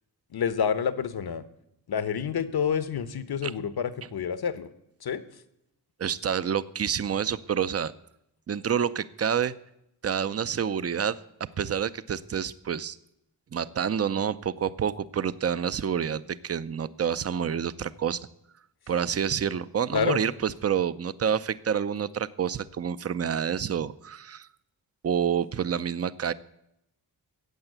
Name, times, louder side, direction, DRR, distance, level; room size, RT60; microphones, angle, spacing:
voice 1, 0.3-1.4 1.9-4.7 5.0-5.2 19.9-20.2, left 7 dB, 65° left, 13 dB, 1.1 m, -28 dB
voice 2, 6.0-7.9 8.5-9.5 10.0-11.2 11.6-13.0 13.5-18.2 18.9-24.5 25.0-26.3, right 8 dB, 40° right, 16 dB, 0.6 m, -28 dB
15.0 x 8.0 x 8.0 m, 0.81 s
wide cardioid pair, 85°, 40 cm